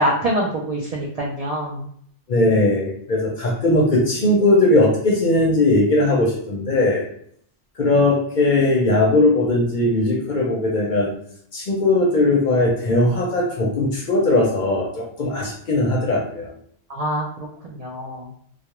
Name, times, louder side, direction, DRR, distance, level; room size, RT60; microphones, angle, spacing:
voice 1, 0.0-1.8 16.9-18.3, right 1 dB, 85° right, -3 dB, 0.3 m, -25 dB
voice 2, 2.3-7.0 7.8-11.1 11.5-16.5, left 2 dB, 55° left, -2 dB, 0.6 m, -19 dB
2.3 x 2.1 x 2.9 m, 0.64 s
omnidirectional pair, 1.2 m